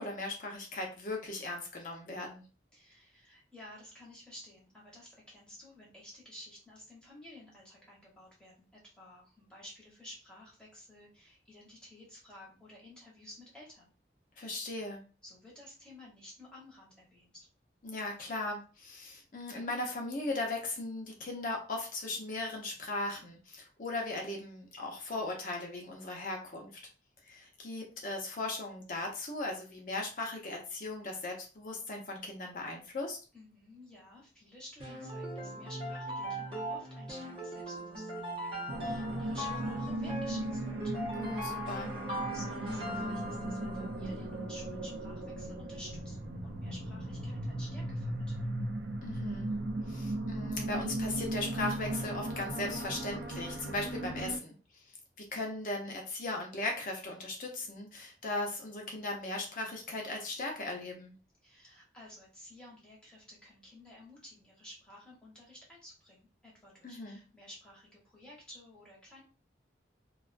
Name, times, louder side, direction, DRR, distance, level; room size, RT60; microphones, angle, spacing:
voice 1, 0.0-2.4 14.4-15.0 17.8-26.7 27.3-33.2 41.1-42.0 49.0-49.5 49.9-54.6 55.2-61.1 66.8-67.2, left 2 dB, 45° left, 0 dB, 0.6 m, -38 dB
voice 2, 2.7-13.9 15.2-17.5 33.3-40.9 41.3-41.4 42.3-48.5 61.4-69.2, left 1 dB, 5° left, -5 dB, 0.8 m, -53 dB
sound 1, 34.8-44.0, right 1 dB, 30° right, 0.7 m, -39 dB
sound 2, 38.7-54.4, right 1 dB, 85° right, 0.5 m, -37 dB
2.3 x 2.2 x 2.4 m, 0.35 s
head